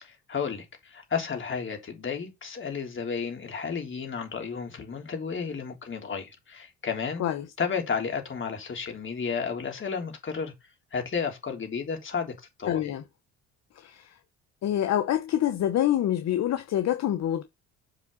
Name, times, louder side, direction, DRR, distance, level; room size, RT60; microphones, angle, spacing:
voice 1, 0.0-7.2 7.6-10.5 10.9-12.3 12.6-12.8, left 6 dB, 40° left, 3.5 m, -32 dB
voice 2, 12.7-13.0 13.8-14.1 14.6-17.4, left 11 dB, 60° left, 1.0 m, -26 dB
7.5 x 5.6 x 4.1 m
supercardioid pair, 85°, 31 cm